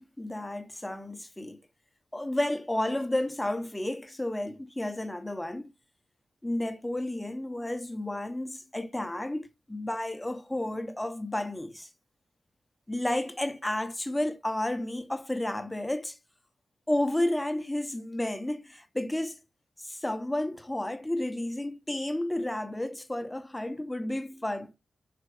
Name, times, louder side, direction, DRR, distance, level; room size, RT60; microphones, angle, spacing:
voice 1, 0.0-1.6 2.1-5.7 6.4-11.9 12.9-16.2 16.9-19.4 19.8-24.7, left 1 dB, 10° left, 1.0 m, -32 dB
5.8 x 4.5 x 4.9 m
wide cardioid pair, 95°, 0 cm